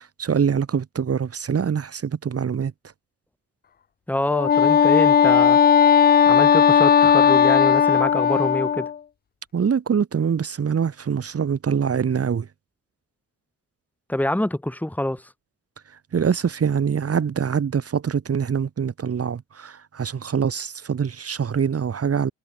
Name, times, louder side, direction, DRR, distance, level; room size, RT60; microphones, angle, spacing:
voice 1, 0.0-2.7 9.5-12.5 15.9-22.3, right 7 dB, 45° right, 3.0 m, -24 dB
voice 2, 4.1-5.6 6.3-8.9 14.1-15.3, left 1 dB, 5° left, 3.6 m, -26 dB
Wind instrument woodwind instrument, 4.3-9.0, left 8 dB, 30° left, 0.4 m, -16 dB
cardioid pair, 110°, 32 cm